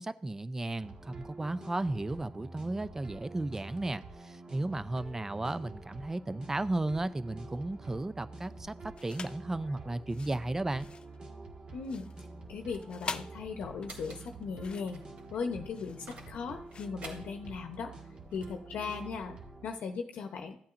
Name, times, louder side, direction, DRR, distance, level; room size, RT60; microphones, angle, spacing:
voice 1, 0.0-8.7 9.0-10.9, right 2 dB, 15° right, 14 dB, 0.5 m, -34 dB
sound 1, 0.8-19.7, right 3 dB, 35° right, 1.6 m, -48 dB
sound 2, 8.9-9.5 10.0-17.8, left 5 dB, 35° left, 0.4 m, -46 dB
voice 2, 11.7-12.1 12.5-15.0 15.3-17.9 18.3-20.6, left 5 dB, 70° left, 4 dB, 0.8 m, -38 dB
sound 3, 12.2-18.6, right 3 dB, 60° right, 2.8 m, -54 dB
15.0 x 8.5 x 2.6 m, 0.62 s
cardioid pair, 100°, 3 cm